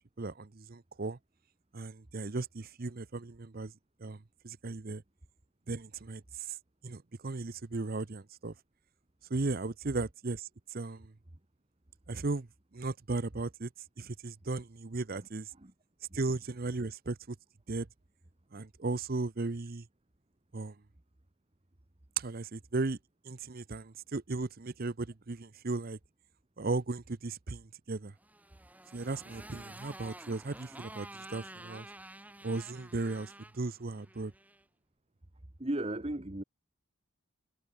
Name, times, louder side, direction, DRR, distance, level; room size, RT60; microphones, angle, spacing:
voice 1, 0.2-1.2 1.7-3.7 4.0-5.0 5.7-6.6 6.8-8.5 9.3-11.1 12.1-12.5 12.7-13.7 14.0-15.5 16.1-17.4 17.7-17.9 18.5-19.9 20.5-20.7 22.2-23.0 23.2-26.0 26.6-28.1 28.9-31.9 32.4-34.3, right 3 dB, 45° right, 0.7 m, -36 dB
Motorcycle, 28.2-34.6, right 1 dB, 5° right, 3.4 m, -50 dB
voice 2, 35.6-36.4, right 1 dB, 25° right, 1.2 m, -35 dB
head